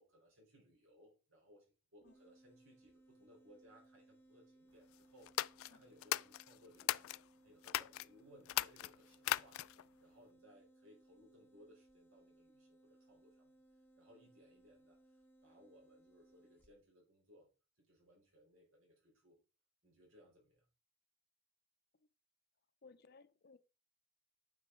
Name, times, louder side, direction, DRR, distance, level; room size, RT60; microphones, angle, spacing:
voice 1, 0.0-1.7 1.9-7.1 7.4-13.5 14.0-17.5 17.8-19.4 19.8-20.6, equal, 80° right, 4.3 m, -65 dB
sound 1, 2.0-16.8, right 2 dB, 10° left, 1.0 m, -67 dB
sound 2, 5.2-7.2 7.6-8.1 8.4-9.9, left 14 dB, 90° left, 0.3 m, -38 dB
voice 2, 22.8-23.6, left 4 dB, 50° left, 0.7 m, -61 dB
9.2 x 5.9 x 3.8 m
head